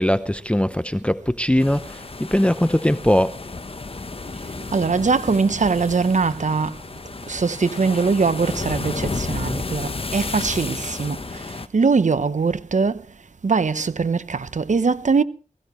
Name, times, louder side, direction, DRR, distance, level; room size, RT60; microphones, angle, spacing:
voice 1, 0.0-3.3, left 1 dB, 10° left, 0.8 m, -20 dB
sound 1, 1.6-11.7, left 3 dB, 40° left, 1.1 m, -32 dB
voice 2, 4.7-6.7 7.3-11.2 11.7-13.0 13.4-15.2, right 4 dB, 60° right, 1.0 m, -21 dB
21.0 x 16.0 x 3.2 m
cardioid pair, 50°, 14 cm